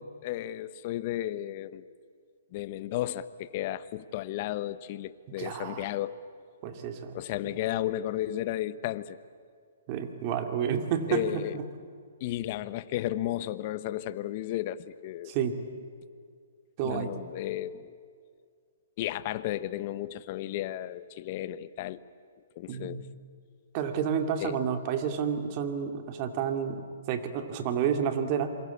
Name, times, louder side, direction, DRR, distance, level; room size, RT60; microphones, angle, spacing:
voice 1, 0.0-1.8 2.5-6.2 7.1-9.2 11.1-11.6 12.2-15.3 16.8-18.0 19.0-22.0 22.6-23.1 24.4-24.6, left 13 dB, 40° left, 15 dB, 1.0 m, -33 dB
voice 2, 5.4-5.9 6.6-7.2 9.9-11.7 15.3-15.6 16.8-17.1 22.7-23.0 23.7-28.5, right 7 dB, 35° right, 7 dB, 2.5 m, -30 dB
27.5 x 23.5 x 8.5 m, 2.2 s
hypercardioid pair, 150°, 0 cm